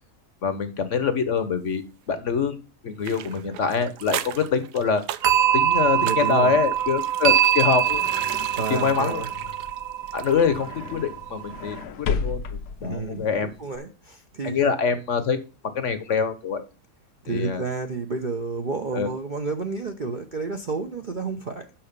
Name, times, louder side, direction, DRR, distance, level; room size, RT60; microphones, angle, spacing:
voice 1, 0.4-2.6 2.8-5.0 5.5-8.0 8.7-9.2 10.1-12.4 12.8-13.5 14.4-15.4 15.7-16.6 17.3-17.6 18.9-19.1, left 6 dB, 55° left, 11 dB, 1.1 m, -24 dB
sound 1, 3.0-10.6 10.9-11.0, right 12 dB, 85° right, 1.2 m, -38 dB
sound 2, 5.2-11.8, right 10 dB, 60° right, 1.1 m, -23 dB
voice 2, 6.0-6.6 8.6-9.3 12.8-14.6 17.2-21.6, right 4 dB, 45° right, 4 dB, 0.7 m, -30 dB
sound 3, 7.4-13.8, left 5 dB, 75° left, 1.3 m, -35 dB
6.3 x 5.8 x 6.7 m, 0.31 s
omnidirectional pair, 1.7 m